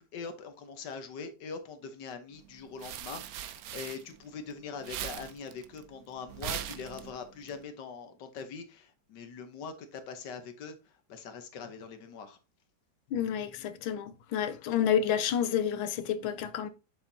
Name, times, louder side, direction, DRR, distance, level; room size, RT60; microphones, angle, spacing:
voice 1, 0.0-12.4, left 5 dB, 60° left, 1.6 m, -43 dB
sound 1, 2.4-4.5 4.8-7.5, right 11 dB, 90° right, 0.7 m, -40 dB
voice 2, 13.1-16.7, left 9 dB, 80° left, 1.5 m, -29 dB
7.2 x 7.1 x 2.7 m
omnidirectional pair, 2.2 m